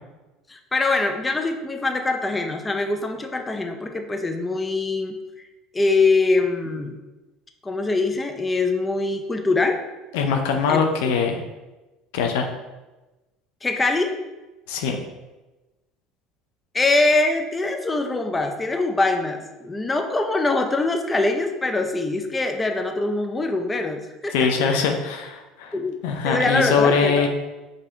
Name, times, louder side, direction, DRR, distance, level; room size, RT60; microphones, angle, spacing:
voice 1, 0.5-5.5 5.7-7.0 7.6-9.8 10.7-11.1 13.6-14.2 16.7-24.8 25.7-26.0 26.2-27.3, left 3 dB, 15° left, 5 dB, 0.5 m, -23 dB
voice 2, 10.1-11.4 12.1-12.5 14.7-15.0 24.3-25.7 26.0-27.3, left 5 dB, 85° left, 4 dB, 0.6 m, -22 dB
5.3 x 2.8 x 3.5 m, 1.1 s
supercardioid pair, 100°, 0 cm